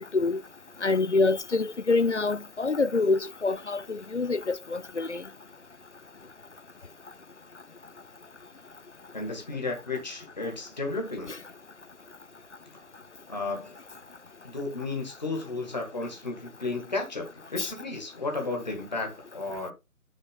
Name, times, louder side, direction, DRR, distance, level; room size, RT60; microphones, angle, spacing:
voice 1, 0.8-5.2 17.6-17.7, left 3 dB, 55° left, 0.5 m, -26 dB
voice 2, 9.1-11.3 13.3-13.8 14.4-19.7, left 3 dB, 30° left, 1.7 m, -33 dB
6.7 x 4.5 x 3.9 m
figure-of-eight pair, 160°, 42 cm